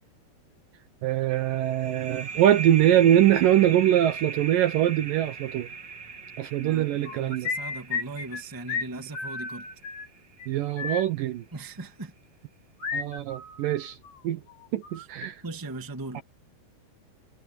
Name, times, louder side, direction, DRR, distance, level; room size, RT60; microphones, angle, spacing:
voice 1, 1.0-5.7 6.4-7.5 10.5-11.4 12.9-14.0 14.2-14.4 14.7-15.4 16.1-16.2, right 12 dB, 70° right, 2.2 m, -23 dB
sound 1, 1.3-10.6, right 5 dB, 35° right, 2.2 m, -39 dB
voice 2, 6.6-9.7 11.5-12.1 15.0-15.1 15.4-16.2, right 2 dB, 10° right, 1.2 m, -39 dB
sound 2, 7.1-8.4 8.7-8.9 9.1-10.1 10.4-10.5 10.8-11.0 12.8-14.2 14.5-15.3, left 5 dB, 85° left, 7.7 m, -33 dB
omnidirectional pair, 4.7 m